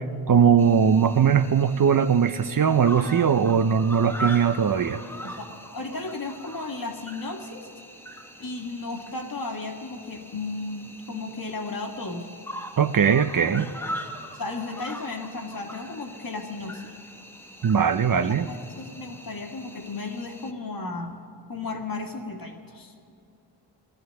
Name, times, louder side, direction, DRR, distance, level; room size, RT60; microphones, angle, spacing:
voice 1, 0.0-5.0 12.8-13.7 17.6-18.5, right 7 dB, 50° right, 11 dB, 0.6 m, -20 dB
Cricket, 0.6-20.5, equal, 5° left, 1.0 m, -41 dB
voice 2, 5.7-7.7 8.4-12.3 14.3-16.9 18.4-21.1 21.5-22.9, left 3 dB, 50° left, 2 dB, 1.8 m, -34 dB
17.0 x 12.5 x 6.6 m, 2.6 s
wide cardioid pair, 70°, 44 cm